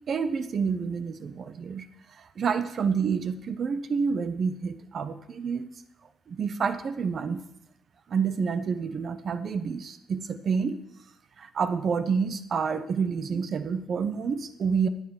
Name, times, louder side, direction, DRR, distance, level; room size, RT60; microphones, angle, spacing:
voice 1, 0.1-1.9 2.2-5.7 6.3-7.4 8.1-10.8 11.4-14.9, right 6 dB, 50° right, 12 dB, 1.0 m, -28 dB
9.9 x 8.5 x 7.3 m, 0.79 s
cardioid pair, 90°, 0 cm